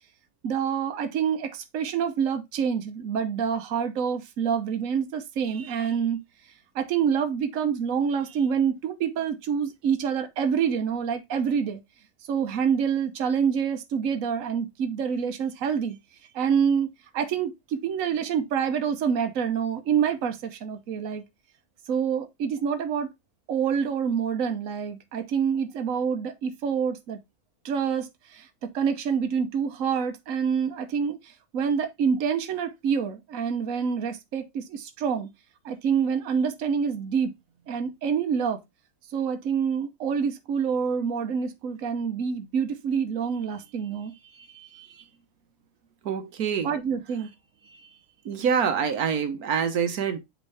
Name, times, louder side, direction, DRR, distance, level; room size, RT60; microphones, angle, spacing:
voice 1, 0.4-6.2 6.7-11.8 12.3-16.0 16.3-21.2 21.9-23.1 23.5-27.2 27.6-35.3 35.6-37.3 37.7-38.6 39.1-45.0 46.6-47.3 47.7-47.9, right 7 dB, 65° right, 1.3 m, -27 dB
voice 2, 46.0-46.7 48.2-50.2, right 7 dB, 90° right, 1.5 m, -26 dB
8.0 x 3.8 x 3.4 m
omnidirectional pair, 1.5 m